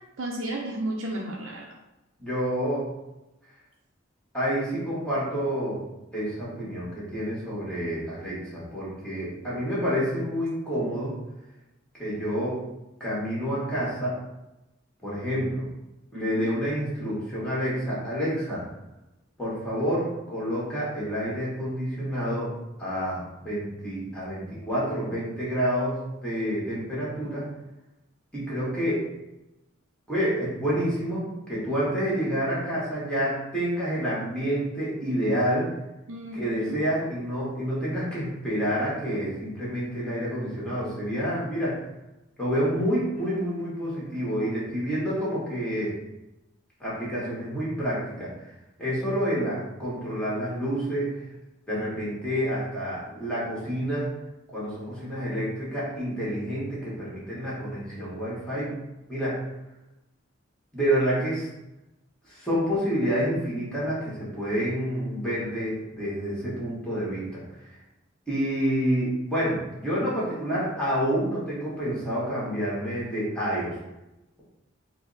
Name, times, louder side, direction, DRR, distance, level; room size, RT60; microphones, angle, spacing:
voice 1, 0.2-1.7 16.1-16.5 36.1-36.8, right 1 dB, 85° right, -1 dB, 0.5 m, -33 dB
voice 2, 2.2-2.9 4.3-5.8 6.1-11.1 12.0-12.5 13.0-14.1 15.0-15.6 16.1-18.6 19.4-22.5 22.8-27.5 28.3-29.0 30.1-35.7 36.3-41.8 42.4-45.9 46.8-48.3 48.8-51.1 51.7-54.1 54.5-58.8 59.1-59.4 60.7-61.5 62.3-67.4 68.3-73.7, equal, 5° left, -8 dB, 1.4 m, -28 dB
4.0 x 2.0 x 3.9 m, 0.96 s
head